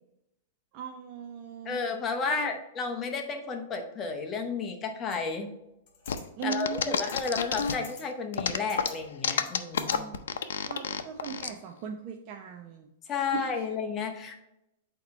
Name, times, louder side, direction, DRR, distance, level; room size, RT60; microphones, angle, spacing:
voice 1, 0.7-1.8 2.3-2.5 6.4-6.9 9.9-10.2 10.5-12.9 13.3-13.6, right 7 dB, 35° right, 2 dB, 0.5 m, -38 dB
voice 2, 1.6-5.5 6.4-10.0 13.1-14.4, left 5 dB, 20° left, 4 dB, 0.8 m, -32 dB
sound 1, 5.1-5.2 5.9-6.2 7.0-7.4 7.7-8.0 8.4-9.0 9.4-10.0, left 4 dB, 40° left, 2.2 m, -48 dB
sound 2, 6.1-8.0 8.3-11.5, left 7 dB, 85° left, 0.5 m, -29 dB
8.1 x 2.9 x 4.4 m, 0.86 s
supercardioid pair, 155°, 0 cm